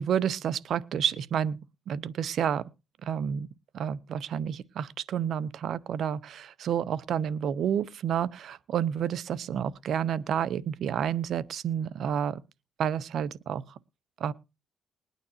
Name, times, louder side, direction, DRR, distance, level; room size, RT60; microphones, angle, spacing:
voice 1, 0.0-1.6 1.9-2.6 3.0-3.5 3.7-12.4 12.8-13.8 14.2-14.3, right 8 dB, 70° right, 0.6 m, -30 dB
21.0 x 9.2 x 2.8 m
cardioid pair, 90°, 0 cm